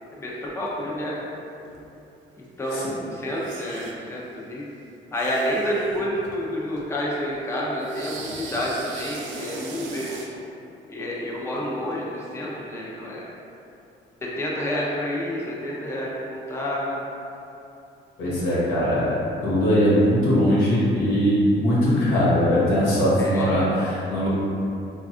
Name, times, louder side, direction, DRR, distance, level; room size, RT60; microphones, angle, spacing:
voice 1, 0.1-1.2 2.4-4.6 5.1-10.2 10.9-13.2 14.2-17.0 23.2-23.6, equal, 15° left, -4 dB, 0.5 m, -29 dB
sound 1, 1.7-1.8 2.6-2.9 3.2-4.1 5.1-6.4 6.7-6.9 7.8-10.3, right 3 dB, 70° right, 0.4 m, -39 dB
voice 2, 18.2-19.2 19.4-24.3, equal, 90° left, -9 dB, 1.0 m, -20 dB
3.2 x 2.3 x 2.4 m, 2.7 s
cardioid pair, 90°, 20 cm